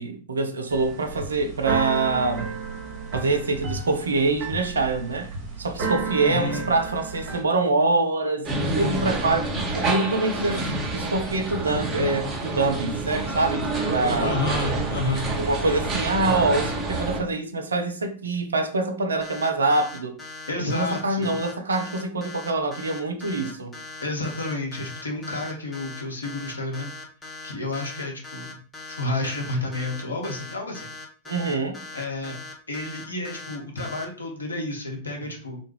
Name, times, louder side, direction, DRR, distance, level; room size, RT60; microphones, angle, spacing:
voice 1, 0.0-2.5 3.1-5.3 5.6-14.4 15.4-20.2 20.6-23.8 31.3-31.8, right 3 dB, 70° right, 0.4 m, -25 dB
Keyboard (musical), 0.7-7.4, right 4 dB, 40° right, 0.8 m, -33 dB
voice 2, 6.2-6.7 14.2-15.3 20.5-21.4 24.0-26.9 27.4-28.6 28.9-30.9 31.9-32.4 32.7-35.6, left 2 dB, 75° left, 0.7 m, -30 dB
sound 1, 8.4-17.2, right 2 dB, 15° right, 1.0 m, -28 dB
sound 2, 19.2-34.0, left 3 dB, 15° left, 0.6 m, -40 dB
2.3 x 2.1 x 3.1 m
figure-of-eight pair, 90°, 0 cm